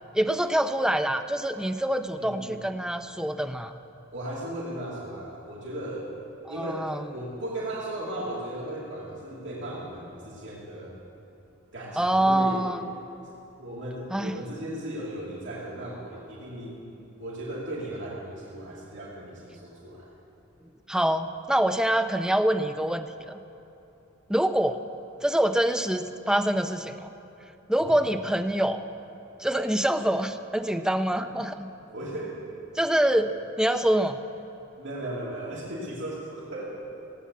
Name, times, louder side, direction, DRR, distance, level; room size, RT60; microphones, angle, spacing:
voice 1, 0.1-3.8 6.5-7.0 12.0-12.9 14.1-14.4 20.9-23.4 24.3-24.8 25.2-27.1 27.7-28.8 29.4-31.7 32.7-34.2, right 1 dB, 5° right, 7 dB, 0.5 m, -25 dB
voice 2, 2.2-2.6 4.1-6.1 6.5-10.9 11.7-12.7 13.6-16.9 17.2-20.1 27.8-28.0 30.8-31.3 31.9-32.4 34.8-36.8, right 1 dB, 60° right, -6 dB, 2.7 m, -36 dB
17.0 x 8.8 x 8.3 m, 3.0 s
head